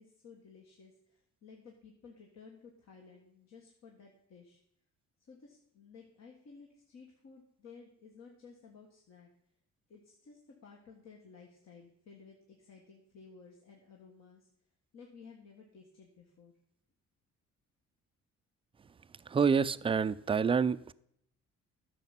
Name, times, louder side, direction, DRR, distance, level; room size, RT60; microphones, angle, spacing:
voice 1, 0.0-4.6 5.3-9.3 9.9-14.5 14.9-16.5, left 5 dB, 60° left, 1 dB, 1.6 m, -55 dB
voice 2, 19.3-20.9, right 6 dB, 20° right, 15 dB, 0.3 m, -27 dB
10.5 x 6.8 x 5.8 m, 0.72 s
cardioid pair, 90°, 30 cm